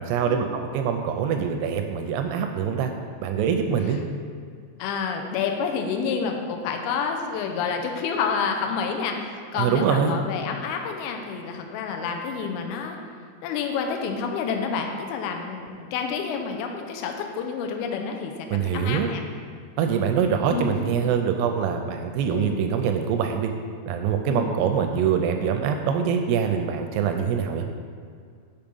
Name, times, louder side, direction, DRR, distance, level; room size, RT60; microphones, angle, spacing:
voice 1, 0.0-2.9 3.2-4.0 9.6-10.1 18.5-19.1 19.8-23.5 23.9-27.7, right 7 dB, 85° right, 5 dB, 2.4 m, -24 dB
voice 2, 4.8-13.0 13.4-19.2 20.4-20.8 22.3-22.6 24.2-24.5, left 6 dB, 80° left, 3 dB, 2.4 m, -29 dB
7.0 x 5.2 x 5.3 m, 2.1 s
omnidirectional pair, 5.0 m